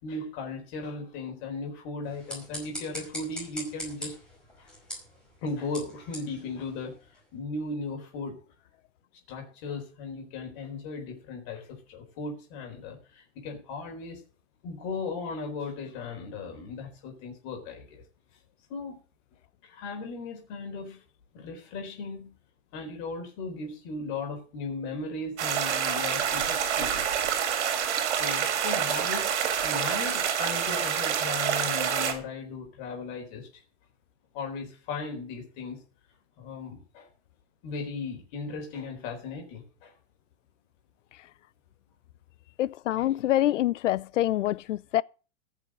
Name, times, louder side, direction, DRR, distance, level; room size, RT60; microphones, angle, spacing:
voice 1, 0.0-4.1 4.6-4.7 5.4-6.9 7.3-8.4 9.3-14.2 14.6-18.0 18.7-19.0 19.6-21.0 21.3-22.3 22.7-27.3 28.2-33.5 34.3-35.8 36.4-37.1 37.6-39.9, left 3 dB, 35° left, 4.4 m, -37 dB
sound 1, 2.0-7.3, equal, ahead, 5.2 m, -42 dB
sound 2, 25.4-32.1, right 8 dB, 65° right, 3.4 m, -27 dB
voice 2, 42.6-45.0, left 14 dB, 75° left, 0.7 m, -26 dB
15.0 x 7.0 x 7.6 m
supercardioid pair, 175°, 37 cm